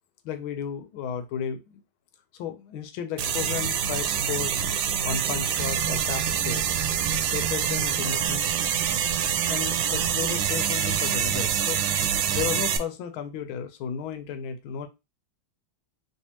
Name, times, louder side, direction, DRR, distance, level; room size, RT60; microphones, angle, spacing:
voice 1, 0.2-1.6 2.3-4.6 5.0-6.8 7.3-8.5 9.5-11.8 12.3-14.9, left 8 dB, 90° left, 8 dB, 1.5 m, -33 dB
sound 1, 3.2-12.8, right 8 dB, 75° right, 1.2 m, -26 dB
3.3 x 3.2 x 2.8 m, 0.24 s
omnidirectional pair, 2.2 m